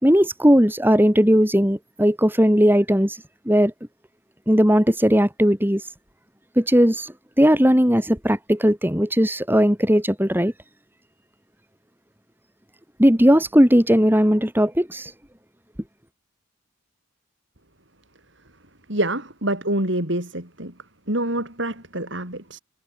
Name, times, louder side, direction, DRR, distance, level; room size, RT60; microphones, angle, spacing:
voice 1, 0.0-3.2 3.5-3.7 4.5-5.8 6.6-10.5 13.0-15.1, equal, 10° right, 4.7 m, -18 dB
voice 2, 18.9-20.7 21.1-22.6, right 1 dB, 60° right, 7.8 m, -26 dB
head